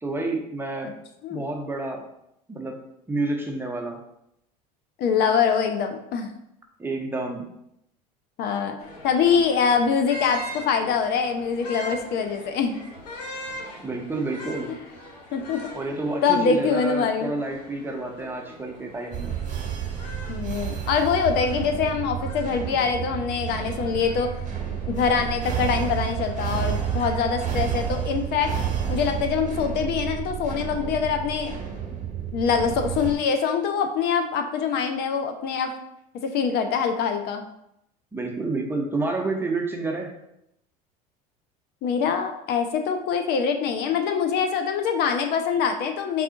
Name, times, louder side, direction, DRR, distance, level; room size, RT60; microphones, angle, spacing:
voice 1, 0.0-0.9 1.3-2.0 2.5-2.8 3.1-4.0 6.8-7.5 13.8-14.7 15.7-19.3 38.1-40.1, right 2 dB, 10° right, 1 dB, 0.8 m, -29 dB
voice 2, 5.0-6.3 8.4-8.8 9.0-12.8 15.3-15.6 16.2-17.3 20.3-24.3 24.9-28.5 28.9-31.5 32.3-35.7 36.2-37.4 41.8-46.2, left 6 dB, 55° left, 6 dB, 0.5 m, -24 dB
sound 1, 8.8-27.5, equal, 90° left, 0.9 m, -42 dB
sound 2, 19.1-33.2, right 8 dB, 40° right, 1.0 m, -30 dB
4.8 x 2.4 x 3.7 m, 0.79 s
hypercardioid pair, 85°, 20 cm